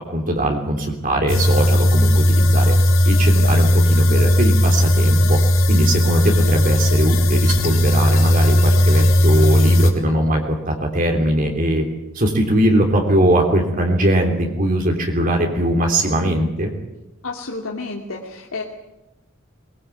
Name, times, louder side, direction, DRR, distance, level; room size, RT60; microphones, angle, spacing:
voice 1, 0.1-2.8 3.0-5.4 5.7-11.8 12.1-16.7, right 1 dB, 40° right, 1 dB, 3.3 m, -20 dB
sound 1, 1.3-9.9, left 1 dB, 75° left, 3.7 m, -16 dB
voice 2, 17.2-18.6, left 3 dB, 90° left, -1 dB, 2.6 m, -30 dB
22.5 x 20.5 x 8.5 m, 1.0 s
head